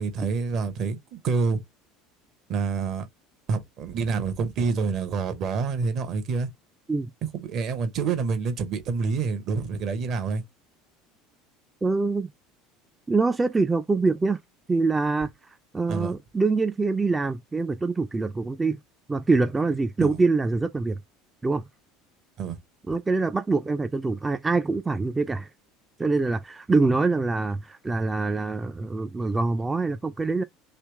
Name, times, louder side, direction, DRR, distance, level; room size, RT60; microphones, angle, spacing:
voice 1, 0.0-1.6 2.5-3.1 3.5-6.5 7.3-10.4 15.9-16.1 20.0-20.2 22.4-22.6, right 5 dB, 50° right, 0.9 m, -27 dB
voice 2, 11.8-12.3 13.1-14.4 14.7-18.8 19.1-21.0 21.4-21.6 22.9-25.5 26.0-30.4, right 3 dB, 15° right, 0.4 m, -25 dB
3.3 x 3.0 x 2.9 m
hypercardioid pair, 70°, 0 cm